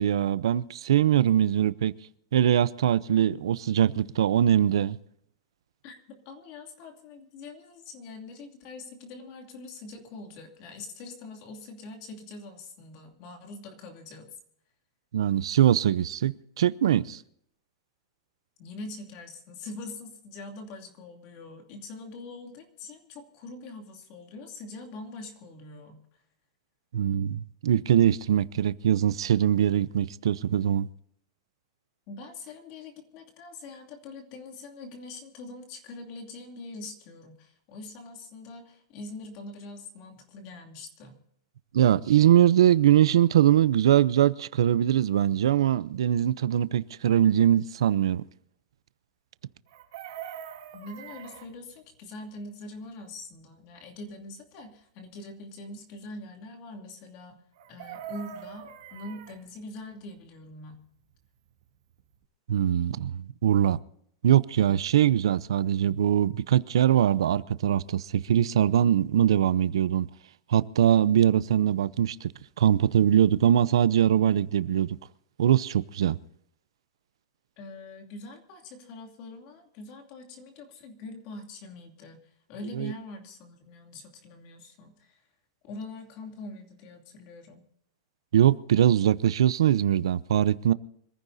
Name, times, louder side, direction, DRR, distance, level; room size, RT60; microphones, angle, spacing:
voice 1, 0.0-1.9 2.3-5.0 15.1-17.2 26.9-30.9 41.7-48.2 62.5-63.8 64.2-70.1 70.5-72.3 72.6-74.9 75.4-76.2 82.8-82.9 88.3-90.7, right 10 dB, 80° right, 0.6 m, -22 dB
voice 2, 6.2-14.3 18.6-26.0 32.1-41.2 50.7-57.4 57.7-60.8 77.6-85.2 85.6-87.7, left 2 dB, 30° left, 2.7 m, -43 dB
Chicken rooster, 49.7-51.5 57.6-59.4 61.6-61.7 62.0-62.2, right 9 dB, 50° right, 2.7 m, -42 dB
26.0 x 15.0 x 2.7 m
supercardioid pair, 180°, 3 cm